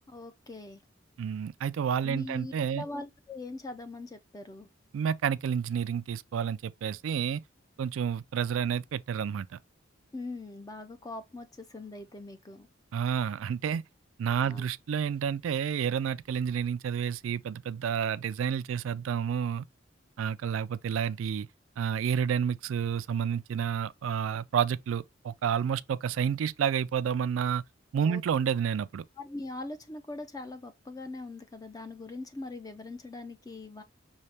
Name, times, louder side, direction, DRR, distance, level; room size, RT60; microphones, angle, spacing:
voice 1, 0.1-0.8 2.0-4.7 10.1-12.7 14.3-14.7 28.0-28.2 29.2-33.8, left 2 dB, 20° left, 0.4 m, -41 dB
voice 2, 1.2-2.9 4.9-7.4 7.8-9.6 12.9-13.8 14.2-19.7 20.2-21.5 21.8-27.6 27.9-29.0, right 7 dB, 80° right, 0.3 m, -30 dB
5.5 x 2.9 x 3.2 m
head